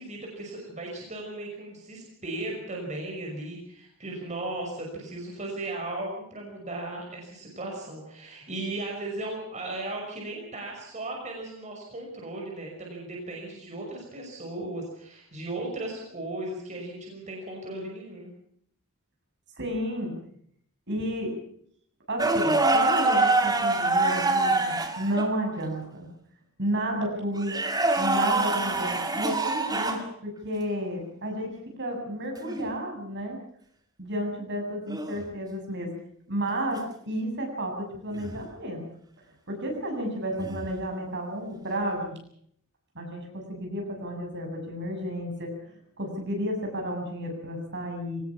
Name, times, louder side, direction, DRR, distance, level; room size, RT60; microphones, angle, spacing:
voice 1, 0.0-18.3, right 2 dB, 35° right, 0 dB, 5.8 m, -36 dB
voice 2, 19.6-20.1 20.9-21.3 22.1-26.1 26.6-27.5 28.0-33.4 34.0-35.9 36.3-36.8 37.1-38.8 39.5-42.1 43.0-45.5 46.0-48.2, equal, 55° right, 2 dB, 7.3 m, -32 dB
sound 1, 22.2-25.3 27.4-30.1 32.4-32.6 34.9-35.2 38.1-38.4 40.4-40.7, right 2 dB, 20° right, 2.3 m, -25 dB
22.5 x 19.0 x 7.2 m, 0.66 s
head